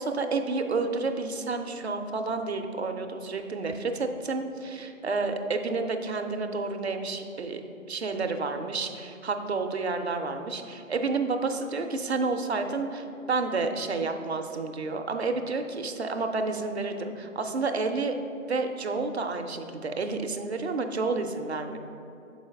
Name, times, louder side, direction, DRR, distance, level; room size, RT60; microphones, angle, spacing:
voice 1, 0.0-7.6 7.9-18.2 18.5-21.8, right 3 dB, 55° right, 5 dB, 0.5 m, -30 dB
6.8 x 4.8 x 3.3 m, 2.8 s
figure-of-eight pair, 165°, 40 cm